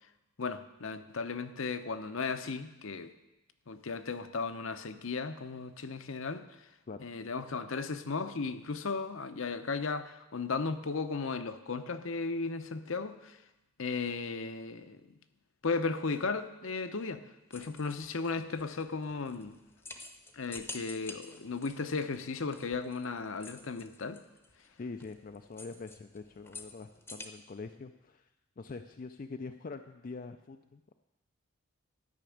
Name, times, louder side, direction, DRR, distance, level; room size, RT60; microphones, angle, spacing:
voice 1, 0.4-3.1 3.7-6.5 7.0-13.4 13.8-15.0 15.6-17.2 17.5-19.6 20.3-24.2, left 4 dB, 65° left, 9 dB, 0.7 m, -35 dB
sound 1, 17.5-27.3, left 3 dB, 10° left, 0.8 m, -50 dB
voice 2, 24.8-28.3 28.6-30.9, left 4 dB, 40° left, 7 dB, 0.4 m, -44 dB
12.5 x 6.0 x 8.5 m, 0.95 s
head